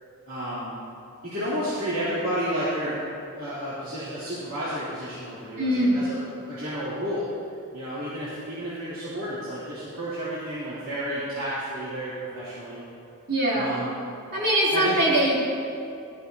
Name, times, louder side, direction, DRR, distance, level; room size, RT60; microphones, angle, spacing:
voice 1, 0.3-0.7 1.2-3.0 3.3-6.2 6.5-7.3 7.7-12.8 13.5-13.9 14.7-15.0, equal, 65° right, -12 dB, 2.9 m, -31 dB
voice 2, 5.6-6.0 13.3-13.7 14.3-15.4, right 1 dB, 50° right, -6 dB, 3.1 m, -22 dB
14.5 x 12.5 x 2.7 m, 2.6 s
head